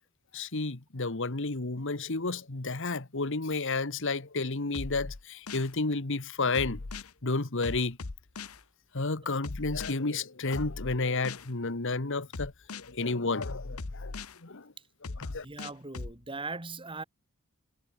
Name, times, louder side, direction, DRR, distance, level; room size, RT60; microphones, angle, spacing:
voice 1, 0.3-6.8 7.2-8.0 8.9-14.1 14.4-14.7 15.0-15.4, left 3 dB, 60° left, 1.6 m, -31 dB
sound 1, 4.7-5.7 6.5-7.1 7.6-8.6 9.4-9.9 10.5-11.5 12.3-12.9 13.4-14.4 15.0-16.2, left 3 dB, 85° left, 1.1 m, -39 dB
voice 2, 15.4-17.0, right 3 dB, 25° right, 2.1 m, -39 dB
head